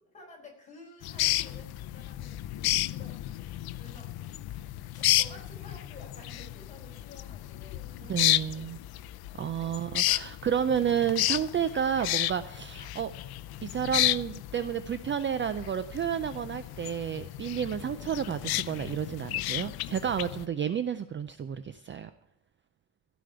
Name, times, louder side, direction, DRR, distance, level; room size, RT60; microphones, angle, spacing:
voice 1, 0.1-4.4 4.9-8.8, left 2 dB, 20° left, -2 dB, 4.4 m, -52 dB
sound 1, 1.0-20.4, left 15 dB, 75° left, 0.5 m, -32 dB
voice 2, 8.1-8.8 9.4-13.1 13.6-22.1, right 8 dB, 30° right, 12 dB, 0.4 m, -31 dB
15.5 x 5.2 x 9.0 m, 0.86 s
cardioid pair, 175°, 37 cm